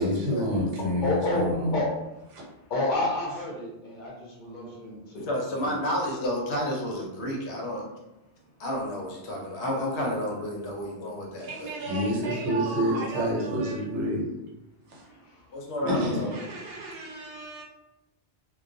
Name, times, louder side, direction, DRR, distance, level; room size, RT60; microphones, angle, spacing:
voice 1, 0.0-1.8 2.3-2.4 11.4-11.5 11.9-14.2 14.9-15.0 15.9-16.3, equal, 90° right, -2 dB, 1.0 m, -28 dB
voice 2, 1.0-1.5 1.7-1.9 2.7-5.8 15.8-16.3, left 2 dB, 55° left, -4 dB, 0.7 m, -30 dB
voice 3, 5.1-7.9 8.6-11.8 15.5-16.1, equal, 75° left, -1 dB, 0.9 m, -31 dB
voice 4, 11.4-13.9 15.1-15.2 16.3-17.6, right 3 dB, 65° right, -2 dB, 0.8 m, -37 dB
2.2 x 2.1 x 2.5 m, 0.93 s
omnidirectional pair, 1.2 m